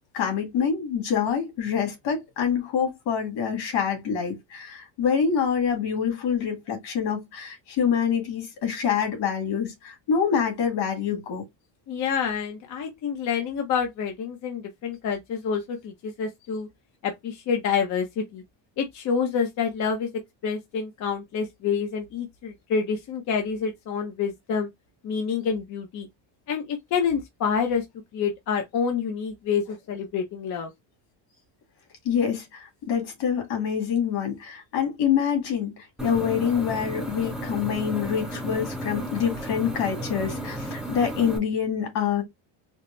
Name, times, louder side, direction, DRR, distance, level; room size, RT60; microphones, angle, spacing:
voice 1, 0.1-11.4 32.0-42.2, left 7 dB, 65° left, 2.0 m, -26 dB
voice 2, 11.9-16.7 17.0-18.4 18.8-20.1 20.4-24.7 25.0-26.1 26.5-27.8 28.1-30.7, left 6 dB, 40° left, 0.6 m, -27 dB
sound 1, 36.0-41.4, right 1 dB, ahead, 0.6 m, -33 dB
4.2 x 2.0 x 3.1 m
cardioid pair, 175°, 47 cm